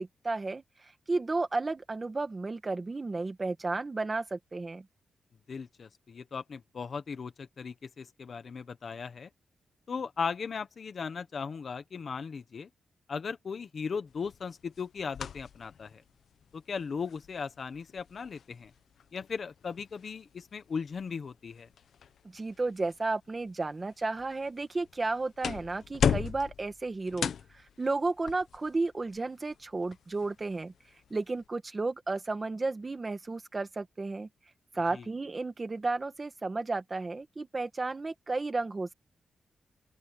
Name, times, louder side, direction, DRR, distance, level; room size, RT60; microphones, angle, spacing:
voice 1, 0.0-4.9 22.3-30.7 31.1-34.3 34.7-38.9, right 3 dB, 25° right, 2.0 m, -33 dB
voice 2, 5.5-9.3 9.9-12.7 13.1-16.0 16.5-18.7 19.1-21.7 34.9-35.1, left 5 dB, 45° left, 1.3 m, -37 dB
sound 1, 14.1-31.5, left 7 dB, 75° left, 1.3 m, -39 dB
open air
wide cardioid pair, 150°, 0 cm